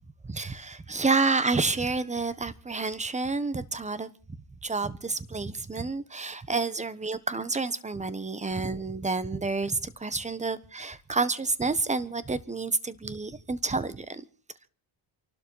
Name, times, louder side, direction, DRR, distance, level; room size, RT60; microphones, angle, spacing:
voice 1, 0.2-4.1 4.6-14.2, right 3 dB, 15° right, 15 dB, 1.3 m, -29 dB
28.5 x 12.0 x 4.1 m, 0.40 s
cardioid pair, 115°, 44 cm